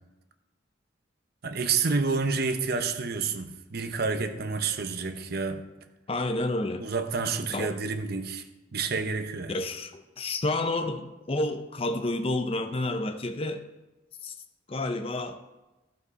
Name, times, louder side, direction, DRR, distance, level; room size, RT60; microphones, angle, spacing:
voice 1, 1.4-5.6 6.8-8.4 8.7-9.6, right 4 dB, 50° right, 7 dB, 0.8 m, -29 dB
voice 2, 6.1-6.8 7.5-7.8 9.5-13.6 14.2-14.3 14.7-15.4, left 2 dB, 30° left, 8 dB, 0.6 m, -30 dB
14.5 x 5.3 x 4.8 m, 1.0 s
head